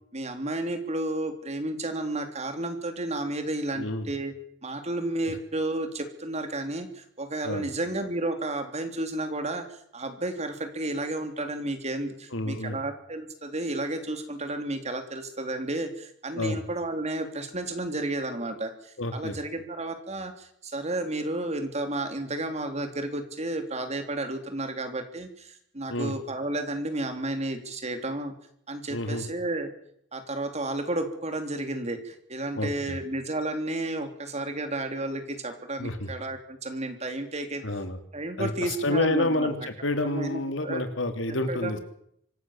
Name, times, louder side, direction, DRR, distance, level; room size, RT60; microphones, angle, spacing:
voice 1, 0.1-4.3 4.6-9.6 9.9-28.3 28.7-29.7 30.1-37.6 38.1-39.5 40.0-40.8 41.5-41.8, right 2 dB, 35° right, 7 dB, 3.2 m, -32 dB
voice 2, 3.7-4.1 5.3-5.4 7.4-7.7 12.3-12.8 16.3-16.6 19.0-19.4 25.9-26.2 28.9-29.3 32.6-33.0 35.8-36.1 37.6-38.0 38.4-41.8, left 2 dB, 85° left, 8 dB, 3.0 m, -29 dB
25.0 x 15.5 x 7.3 m, 0.70 s
head